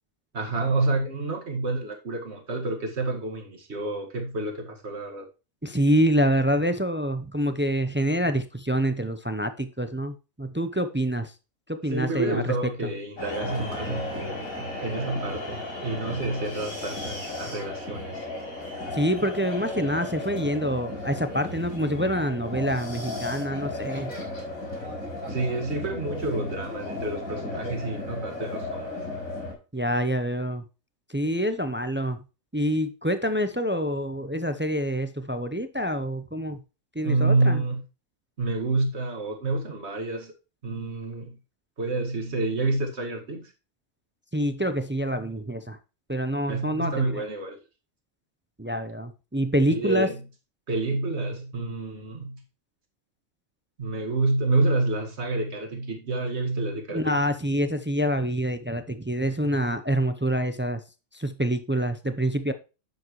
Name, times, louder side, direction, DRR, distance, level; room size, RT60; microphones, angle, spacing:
voice 1, 0.3-5.3 11.9-18.3 25.3-29.0 37.0-37.8 38.4-40.3 40.6-41.4 41.8-43.5 46.5-47.6 49.7-50.2 50.7-52.4 53.8-57.2, right 2 dB, 50° right, 2.2 m, -28 dB
voice 2, 5.6-11.3 11.7-12.5 18.9-24.1 29.7-30.6 31.1-32.2 32.5-36.6 36.9-37.6 44.3-45.8 46.1-47.2 48.6-50.1 56.9-60.8 61.1-62.5, equal, 15° right, 0.4 m, -26 dB
sound 1, 13.2-29.5, left 2 dB, 75° left, 4.5 m, -35 dB
10.5 x 7.4 x 3.1 m
omnidirectional pair, 1.4 m